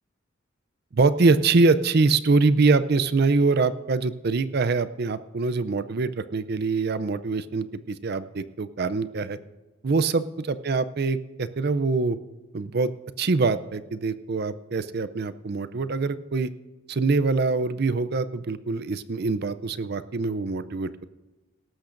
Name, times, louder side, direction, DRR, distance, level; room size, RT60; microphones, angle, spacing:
voice 1, 0.9-9.4 9.8-12.2 12.5-12.9 13.2-16.5 16.9-21.0, right 3 dB, 50° right, 14 dB, 0.5 m, -24 dB
18.0 x 14.0 x 2.6 m, 1.1 s
head